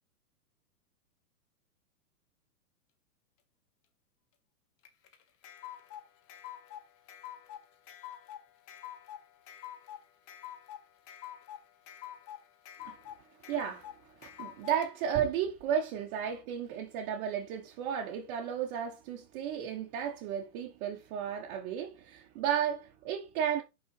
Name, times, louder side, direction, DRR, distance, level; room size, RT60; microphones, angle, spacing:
sound 1, 4.8-14.9, left 11 dB, 30° left, 1.3 m, -47 dB
voice 1, 13.5-13.9 14.2-23.6, right 9 dB, 40° right, 1.5 m, -33 dB
5.5 x 5.4 x 4.7 m
hypercardioid pair, 125°, 47 cm